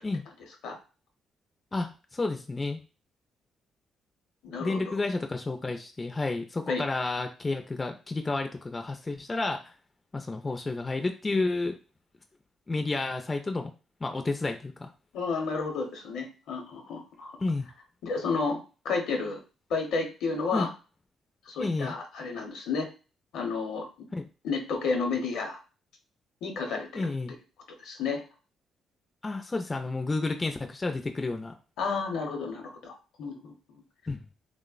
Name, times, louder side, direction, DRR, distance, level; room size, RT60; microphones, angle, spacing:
voice 1, 1.7-2.8 4.6-9.7 10.1-11.8 12.7-13.7 14.0-14.9 17.4-17.7 20.5-20.7 21.6-21.9 24.1-24.2 26.9-27.3 29.2-31.5 34.1-34.3, left 3 dB, 25° left, 5 dB, 0.3 m, -31 dB
voice 2, 4.4-4.8 6.7-6.8 15.1-17.3 18.0-18.6 18.8-19.4 19.7-20.7 21.5-22.9 23.3-23.9 24.4-25.6 26.4-27.1 27.8-28.2 31.8-32.9 33.2-33.5, left 4 dB, 80° left, 3 dB, 0.7 m, -31 dB
3.2 x 2.0 x 2.3 m, 0.34 s
cardioid pair, 90°, 0 cm